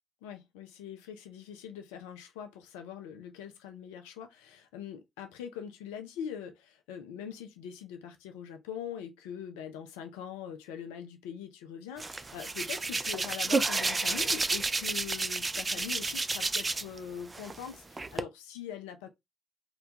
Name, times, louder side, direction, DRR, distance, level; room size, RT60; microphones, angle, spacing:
voice 1, 0.2-19.1, left 8 dB, 90° left, 0.3 m, -42 dB
Hands, 12.0-17.0 17.3-18.2, right 3 dB, 35° right, 0.4 m, -31 dB
2.2 x 2.1 x 2.7 m
hypercardioid pair, 40°, 0 cm